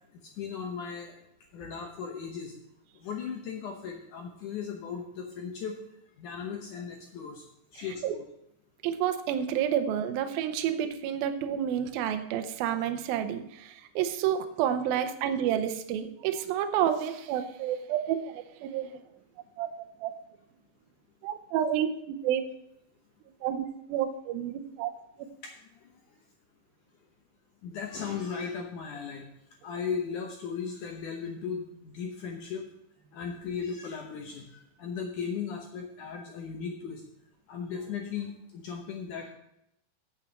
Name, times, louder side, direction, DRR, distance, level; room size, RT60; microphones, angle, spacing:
voice 1, 0.1-1.2 1.5-2.5 3.0-5.8 6.2-7.5 7.7-8.3 25.4-25.5 27.6-29.3 29.6-32.6 33.1-37.0 37.5-39.3, left 6 dB, 70° left, 1 dB, 2.0 m, -37 dB
voice 2, 8.8-19.0 19.6-19.7 20.0-20.1 21.2-22.4 23.4-24.9, right 10 dB, 75° right, 8 dB, 2.4 m, -29 dB
8.8 x 7.5 x 6.4 m, 0.80 s
omnidirectional pair, 4.7 m